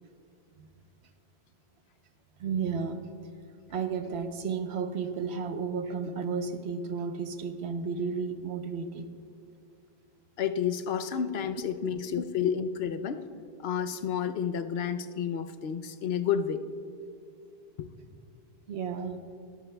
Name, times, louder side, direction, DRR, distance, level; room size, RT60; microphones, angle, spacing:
voice 1, 2.4-3.0 3.7-9.1 11.8-11.9 18.7-19.2, right 5 dB, 90° right, 8 dB, 1.1 m, -33 dB
voice 2, 10.4-13.3 13.6-16.6 17.8-17.9, left 8 dB, 75° left, 10 dB, 0.8 m, -30 dB
20.5 x 11.0 x 2.2 m, 2.5 s
omnidirectional pair, 1.1 m